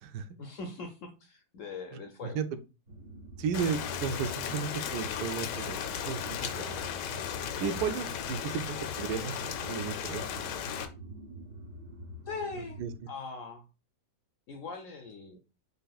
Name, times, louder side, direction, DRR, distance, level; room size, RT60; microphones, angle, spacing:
voice 1, 0.4-2.4 8.5-8.7 12.3-12.8 13.1-13.6 14.5-15.4, left 4 dB, 65° left, 6 dB, 0.8 m, -41 dB
sound 1, 2.9-13.0, right 1 dB, 50° right, 1.7 m, -46 dB
voice 2, 3.4-5.8 6.0-6.8 7.6-10.2 12.8-12.9, right 7 dB, 75° right, 9 dB, 1.1 m, -34 dB
Rain, 3.5-10.9, left 8 dB, 85° left, 1.3 m, -36 dB
6.7 x 3.4 x 2.3 m, 0.31 s
omnidirectional pair, 1.8 m